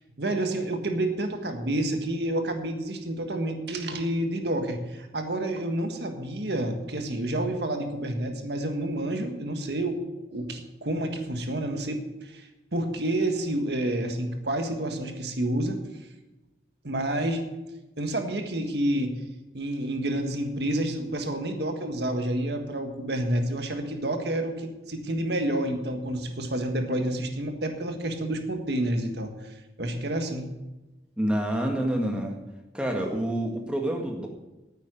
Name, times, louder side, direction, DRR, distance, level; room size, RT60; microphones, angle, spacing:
voice 1, 0.2-10.0 10.3-15.8 16.8-17.5 18.0-19.1 19.5-29.3 29.8-30.5, right 1 dB, 70° right, 5 dB, 1.7 m, -29 dB
voice 2, 31.2-32.3 32.7-34.3, right 1 dB, 5° right, 1 dB, 1.7 m, -27 dB
9.7 x 9.0 x 9.1 m, 1.0 s
head